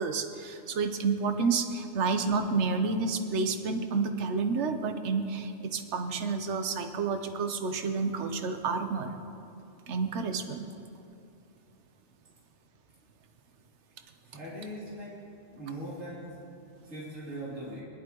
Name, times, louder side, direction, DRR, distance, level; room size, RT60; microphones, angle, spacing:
voice 1, 0.0-9.1 9.9-10.7, right 4 dB, 65° right, 7 dB, 1.1 m, -30 dB
voice 2, 14.2-15.2 15.5-16.3 16.8-17.8, right 1 dB, 85° right, -9 dB, 3.7 m, -40 dB
20.0 x 11.0 x 3.0 m, 2.7 s
omnidirectional pair, 1.3 m